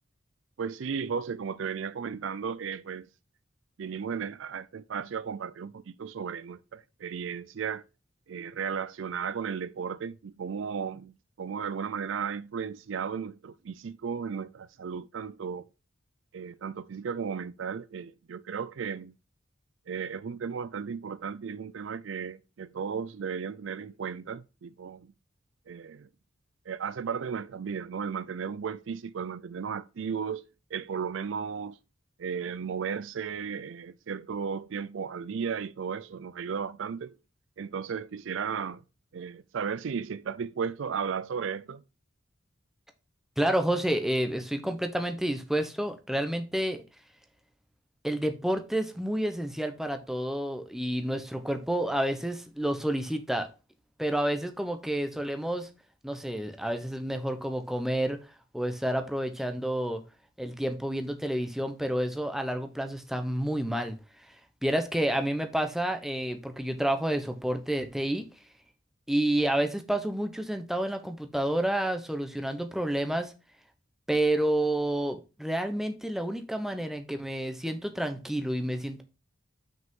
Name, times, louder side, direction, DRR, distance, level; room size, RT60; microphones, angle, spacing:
voice 1, 0.6-3.1 3.8-7.8 8.3-15.6 16.3-19.1 19.9-25.1 25.7-26.1 26.7-31.8 32.2-37.1 37.6-38.8 39.1-41.8, right 6 dB, 70° right, 0.4 m, -35 dB
voice 2, 43.4-46.8 48.0-53.5 54.0-55.7 56.0-58.2 58.5-60.0 60.4-64.0 64.6-68.2 69.1-73.3 74.1-79.0, right 1 dB, ahead, 0.8 m, -29 dB
6.1 x 5.0 x 3.6 m
head